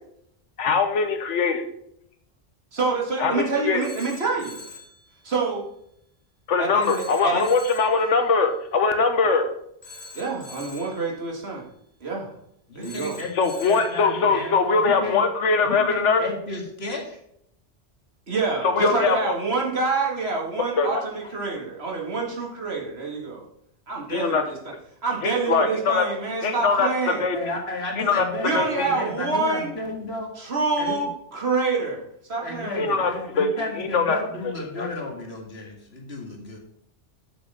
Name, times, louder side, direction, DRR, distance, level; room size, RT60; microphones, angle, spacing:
voice 1, 0.6-1.6 3.2-3.8 6.5-9.5 13.4-16.2 18.6-19.3 20.8-21.0 24.1-24.4 25.2-26.1 26.4-26.9 27.2-27.5 28.0-28.2 28.5-28.9 32.8-33.1 33.4-34.2 34.4-34.9, left 4 dB, 80° left, 8 dB, 1.3 m, -22 dB
voice 2, 2.7-4.6 5.2-5.7 6.6-7.5 10.1-11.6 12.0-12.3 12.8-13.2 18.3-23.4 23.9-24.6 25.0-27.3 28.4-29.7 30.4-32.0 32.3-33.0, right 4 dB, 60° right, -1 dB, 2.2 m, -27 dB
Telephone, 3.8-5.0 6.8-8.0 9.8-11.0 12.8-14.0, left 3 dB, 20° left, 3.5 m, -43 dB
voice 3, 12.7-15.2 15.6-17.2 27.3-30.3 30.8-30.9 32.4-36.6, left 2 dB, 60° left, 0 dB, 2.2 m, -33 dB
7.3 x 6.5 x 5.5 m, 0.74 s
omnidirectional pair, 1.2 m